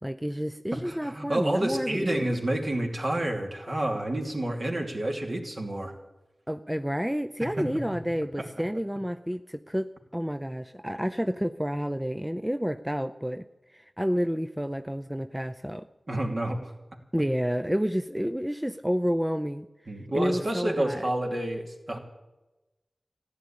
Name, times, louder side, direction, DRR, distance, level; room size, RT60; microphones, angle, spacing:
voice 1, 0.0-2.3 6.5-13.4 13.7-15.9 17.1-19.7 20.1-21.0, equal, 5° right, 10 dB, 0.5 m, -30 dB
voice 2, 0.7-5.9 7.4-7.7 8.4-8.5 16.1-16.7 19.9-22.0, right 1 dB, 50° right, 1 dB, 2.8 m, -29 dB
14.5 x 11.0 x 8.7 m, 1.0 s
wide cardioid pair, 50°, 0 cm